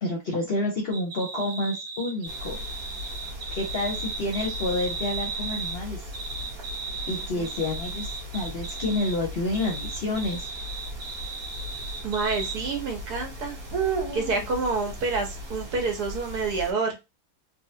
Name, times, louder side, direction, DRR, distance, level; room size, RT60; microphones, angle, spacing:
voice 1, 0.0-2.6 3.5-6.0 7.1-10.5, left 2 dB, 55° left, 0 dB, 0.7 m, -29 dB
sound 1, 0.9-5.8 6.1-9.2 9.5-12.5, right 3 dB, 20° right, 0.8 m, -36 dB
sound 2, 2.3-16.7, right 1 dB, 60° right, 1.5 m, -37 dB
voice 2, 12.0-13.6 14.1-17.0, right 4 dB, 75° right, 3 dB, 1.4 m, -28 dB
3.7 x 2.1 x 2.7 m, 0.24 s
omnidirectional pair, 1.7 m